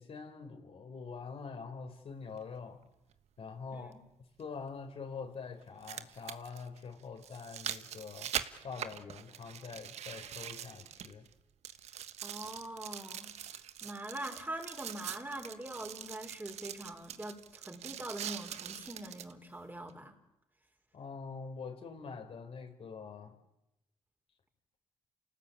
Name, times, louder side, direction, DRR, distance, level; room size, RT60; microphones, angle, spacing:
voice 1, 0.0-2.8 3.4-4.0 4.4-8.3 8.6-11.3 20.9-23.4, left 5 dB, 60° left, 4 dB, 4.8 m, -45 dB
sound 1, 2.4-2.5 4.4-4.5 5.6-11.3 11.6-19.3 19.9-20.0, right 10 dB, 75° right, 1.3 m, -43 dB
voice 2, 12.2-13.3 13.8-20.2, right 1 dB, 15° right, 3 dB, 5.2 m, -43 dB
28.5 x 18.5 x 8.7 m, 0.90 s
supercardioid pair, 65°, 11 cm